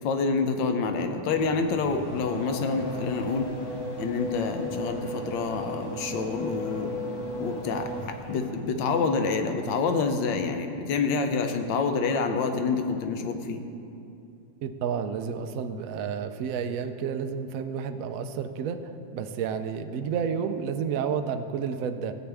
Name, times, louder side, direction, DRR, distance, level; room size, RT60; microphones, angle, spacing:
voice 1, 0.0-3.5 4.0-6.9 7.4-13.6, left 4 dB, 80° left, 6 dB, 1.4 m, -27 dB
Race car auto racing / Accelerating revving vroom, 1.4-8.7, equal, 55° left, 1.8 m, -36 dB
voice 2, 14.6-18.8 19.1-22.1, right 7 dB, 75° right, 8 dB, 0.7 m, -30 dB
15.0 x 8.4 x 3.4 m, 2.6 s
omnidirectional pair, 2.0 m